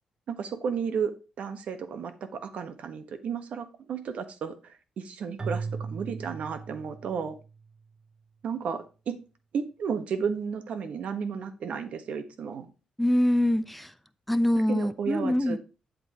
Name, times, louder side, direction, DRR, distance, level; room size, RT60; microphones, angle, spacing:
voice 1, 0.3-1.1 1.4-7.4 8.4-9.1 9.5-12.7 14.7-15.6, right 6 dB, 70° right, 1.2 m, -33 dB
Keyboard (musical), 5.4-7.6, right 5 dB, 35° right, 0.3 m, -37 dB
voice 2, 13.0-13.9 14.3-15.6, left 1 dB, 5° left, 0.7 m, -24 dB
8.8 x 8.0 x 2.9 m
cardioid pair, 95°, 2 cm